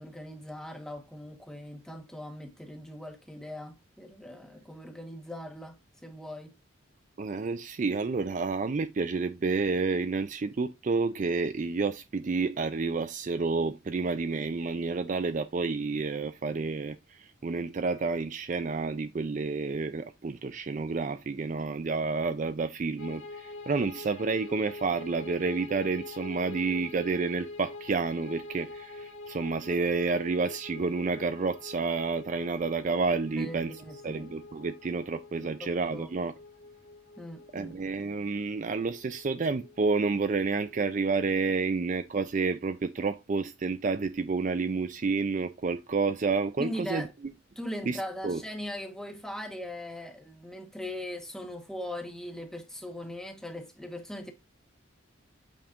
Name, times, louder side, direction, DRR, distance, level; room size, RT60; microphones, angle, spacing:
voice 1, 0.0-5.8 6.0-6.5 33.3-34.3 35.6-36.1 37.2-37.7 46.6-47.1 47.6-54.3, left 1 dB, 5° left, 1.2 m, -40 dB
voice 2, 7.2-33.7 34.0-36.3 37.5-47.3 47.9-48.4, right 4 dB, 35° right, 0.4 m, -30 dB
sound 1, 23.0-41.2, left 3 dB, 75° left, 1.5 m, -46 dB
8.5 x 5.3 x 2.5 m
head